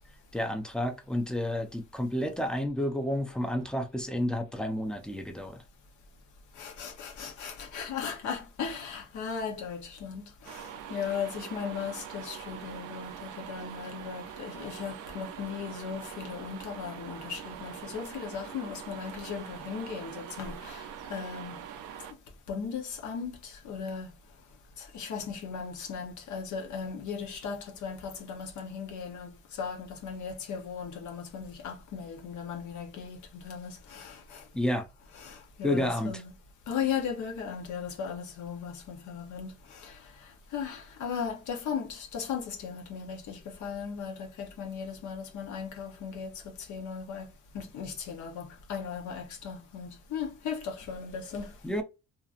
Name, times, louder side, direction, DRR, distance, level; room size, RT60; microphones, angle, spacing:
voice 1, 0.3-5.6 34.5-34.9 35.6-36.1 51.6-51.8, left 1 dB, 5° left, 0.4 m, -30 dB
voice 2, 6.6-21.6 22.5-24.1 24.8-34.4 35.1-36.3 36.7-40.0 40.5-51.5, left 6 dB, 75° left, 0.8 m, -37 dB
sound 1, 10.4-22.1, right 9 dB, 90° right, 0.5 m, -43 dB
2.9 x 2.4 x 2.4 m
cardioid pair, 90°, 30 cm